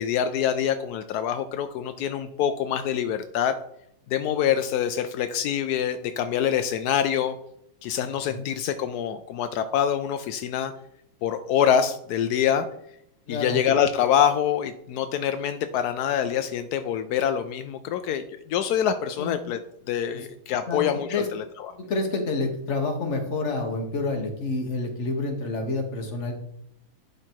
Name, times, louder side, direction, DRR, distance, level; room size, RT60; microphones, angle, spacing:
voice 1, 0.0-3.5 4.1-7.4 7.8-10.7 11.2-12.7 13.3-19.6 19.9-21.7, left 9 dB, 80° left, 10 dB, 0.9 m, -25 dB
voice 2, 13.3-13.6 19.2-19.4 20.1-20.3 20.7-20.8 21.1-21.2 21.8-26.3, left 3 dB, 40° left, 3 dB, 1.4 m, -28 dB
11.0 x 3.8 x 4.6 m, 0.75 s
omnidirectional pair, 2.2 m